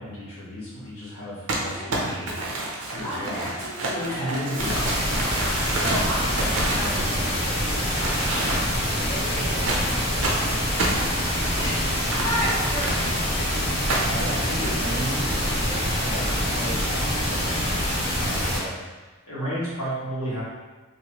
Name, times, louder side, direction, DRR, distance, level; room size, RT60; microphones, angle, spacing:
voice 1, 0.0-2.4 2.9-3.4 3.9-4.8 6.8-7.2 9.3-9.6 14.1-15.6 16.0-18.8 19.2-20.4, equal, 85° left, -9 dB, 1.3 m, -33 dB
Crumpling crinkling, 1.5-7.5 7.9-8.9 9.7-13.2 13.9-14.3, right 2 dB, 75° right, 0.6 m, -29 dB
voice 2, 1.6-2.5 3.0-4.4 5.7-8.2 8.7-13.7 14.4-14.7 15.5-15.8, equal, 15° left, -10 dB, 0.7 m, -35 dB
sound 1, 4.6-18.6, equal, 55° left, 1.3 m, -25 dB
2.9 x 2.4 x 3.0 m, 1.3 s
head